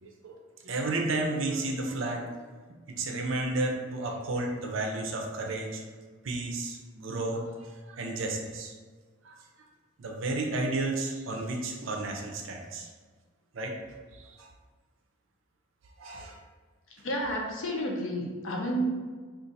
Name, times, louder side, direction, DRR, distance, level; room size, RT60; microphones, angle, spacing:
voice 1, 0.0-0.4 0.6-2.4 2.9-5.8 6.2-8.7 9.2-9.7 10.0-12.9 13.5-13.8 14.1-14.5 16.0-16.4, right 2 dB, 65° right, 2 dB, 0.5 m, -32 dB
voice 2, 17.0-19.1, right 1 dB, 65° left, 0 dB, 0.6 m, -31 dB
2.6 x 2.4 x 3.9 m, 1.5 s
head